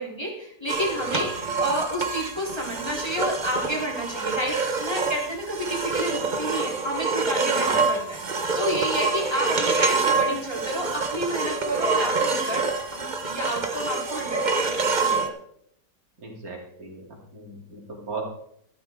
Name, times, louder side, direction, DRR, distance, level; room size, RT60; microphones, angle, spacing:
voice 1, 0.0-8.2 8.5-15.3, equal, 15° left, -3 dB, 3.6 m, -30 dB
sound 1, 0.7-15.3, right 4 dB, 35° right, 0.9 m, -26 dB
voice 2, 16.2-17.0 17.3-18.2, right 3 dB, 55° right, -1 dB, 3.6 m, -37 dB
12.5 x 12.5 x 3.7 m, 0.71 s
omnidirectional pair, 1.8 m